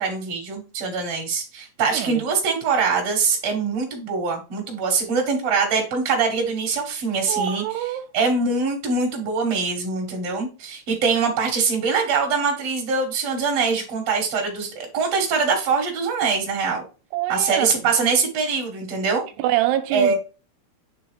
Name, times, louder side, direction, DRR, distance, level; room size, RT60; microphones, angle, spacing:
voice 1, 0.0-7.6 8.1-16.8 17.3-19.2 19.9-20.1, right 5 dB, 60° right, 1.6 m, -23 dB
voice 2, 1.8-2.2 7.3-8.1 17.1-17.7 19.4-20.2, right 13 dB, 85° right, 2.7 m, -25 dB
8.4 x 3.5 x 4.9 m
omnidirectional pair, 5.0 m